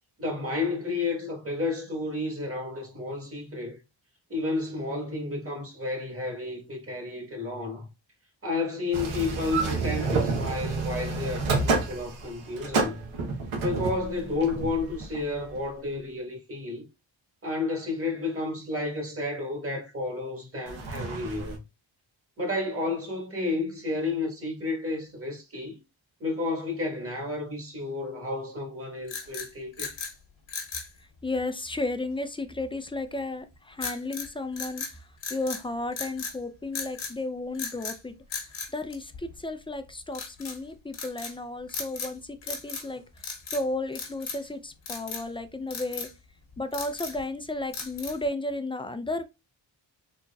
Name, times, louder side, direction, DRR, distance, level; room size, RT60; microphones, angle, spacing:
voice 1, 0.2-3.8 4.3-7.9 8.4-13.0 13.6-16.8 17.4-21.6 22.4-25.8 26.2-29.9, left 3 dB, 30° right, 1.5 m, -31 dB
sound 1, 8.9-15.6 20.7-21.6, right 3 dB, 90° right, 1.0 m, -29 dB
sound 2, 29.0-30.1 30.5-30.9 33.8-34.3 34.6-35.6 35.9-36.4 36.7-37.1 37.5-38.0 38.3-39.5 40.1-40.6 40.9-41.3 41.7-42.2 42.4-42.9 43.2-43.6 43.9-44.5 44.9-45.3 45.7-46.1 46.5-47.2 47.7-48.3, left 5 dB, 80° left, 1.3 m, -36 dB
voice 2, 31.2-35.0 35.3-38.1 38.7-43.0 43.5-46.1 46.6-49.2, left 2 dB, 10° left, 0.3 m, -33 dB
4.1 x 2.9 x 2.3 m
cardioid pair, 75°, 46 cm